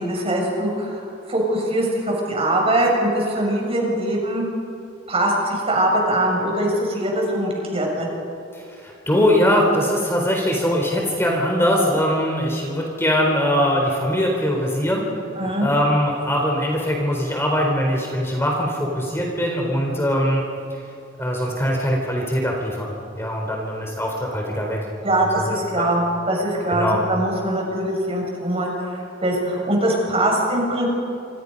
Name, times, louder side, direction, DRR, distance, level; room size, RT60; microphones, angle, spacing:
voice 1, 0.0-4.4 5.1-8.1 15.4-15.7 25.0-30.9, right 1 dB, 30° right, -1 dB, 7.0 m, -22 dB
voice 2, 8.5-15.1 15.6-20.4 20.7-20.8 21.2-24.8 25.1-25.9 26.7-27.1, equal, 15° left, 0 dB, 4.0 m, -22 dB
27.5 x 27.0 x 5.4 m, 2.6 s
head